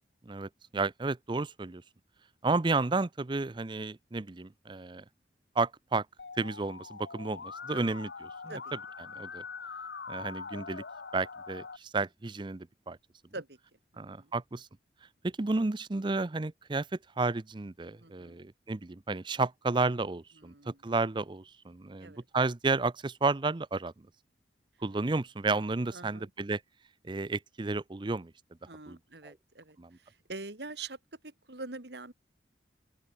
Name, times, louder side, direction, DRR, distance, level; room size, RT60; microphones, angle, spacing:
voice 1, 0.3-1.8 2.4-5.0 5.6-6.1 6.4-8.1 8.4-8.5 9.2-9.4 10.1-10.8 11.1-13.0 14.0-14.7 15.2-16.9 17.2-23.9 24.8-26.6 27.0-28.3 28.9-29.0 29.2-29.3 29.8-29.9, right 3 dB, 25° right, 0.5 m, -32 dB
Musical instrument, 6.2-11.8, left 5 dB, 75° left, 1.1 m, -43 dB
voice 2, 13.9-14.3 18.0-18.4 20.4-20.8 22.0-22.2 25.9-26.3 28.7-32.1, right 3 dB, 70° right, 2.5 m, -45 dB
open air
head